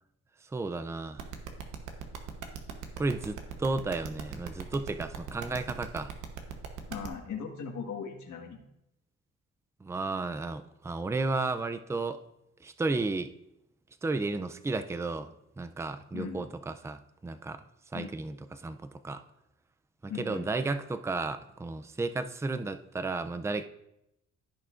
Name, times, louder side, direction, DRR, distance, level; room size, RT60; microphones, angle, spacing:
voice 1, 0.4-1.3 3.0-6.1 9.8-12.2 12.6-13.3 14.0-17.6 17.9-19.2 20.0-23.6, right 3 dB, 10° right, 10 dB, 0.4 m, -33 dB
sound 1, 1.2-7.1, right 8 dB, 75° right, 1.1 m, -39 dB
voice 2, 6.9-8.6 16.1-16.4 17.9-18.1 20.1-20.5, left 6 dB, 70° left, 2 dB, 1.6 m, -38 dB
14.5 x 5.7 x 2.5 m, 0.83 s
cardioid pair, 90°, 30 cm